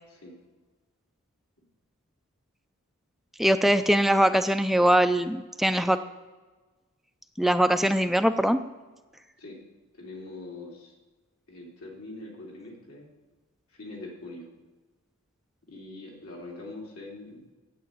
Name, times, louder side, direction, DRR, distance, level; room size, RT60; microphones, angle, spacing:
voice 1, 3.4-6.0 7.4-8.6, equal, ahead, 9 dB, 0.3 m, -22 dB
voice 2, 9.9-10.9 11.5-13.1 13.7-14.5 15.7-17.4, left 2 dB, 80° left, -1 dB, 3.1 m, -43 dB
9.3 x 8.5 x 8.8 m, 1.3 s
head